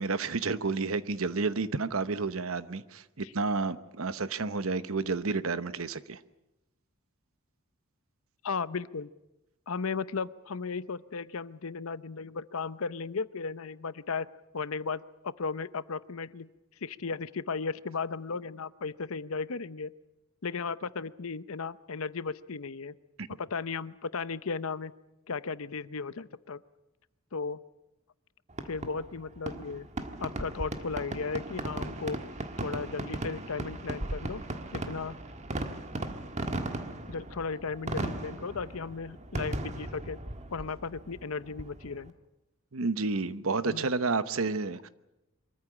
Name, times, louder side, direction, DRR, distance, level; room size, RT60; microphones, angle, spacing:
voice 1, 0.0-6.2 23.2-23.3 42.7-44.9, right 4 dB, 70° right, 1.0 m, -30 dB
voice 2, 8.4-9.1 9.7-14.3 14.5-16.5 16.8-19.9 20.4-22.9 23.3-24.9 25.3-26.6 27.3-27.6 28.6-29.9 30.2-32.2 32.6-34.4 34.7-35.2 37.1-40.2 40.5-42.1 43.6-43.9, left 4 dB, 70° left, 0.7 m, -35 dB
Fireworks, 28.5-42.1, right 1 dB, 35° right, 1.5 m, -37 dB
24.5 x 14.0 x 9.8 m
head